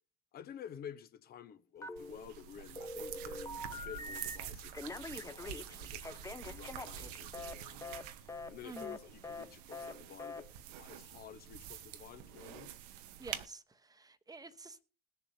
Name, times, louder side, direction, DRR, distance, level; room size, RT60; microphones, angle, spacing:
voice 1, 0.3-10.5 10.7-12.7, left 9 dB, 50° left, 1.1 m, -51 dB
Telephone, 1.8-2.4 2.7-4.4 4.7-7.5 7.8-8.0 8.3-8.5 8.8-9.0 9.2-9.4 9.7-9.9 10.2-10.4, left 2 dB, 15° left, 0.8 m, -44 dB
sound 1, 2.0-13.5, right 10 dB, 75° right, 0.9 m, -47 dB
voice 2, 8.6-9.0 13.2-14.8, right 3 dB, 20° right, 1.0 m, -50 dB
21.0 x 7.0 x 2.8 m
hypercardioid pair, 65°, 21 cm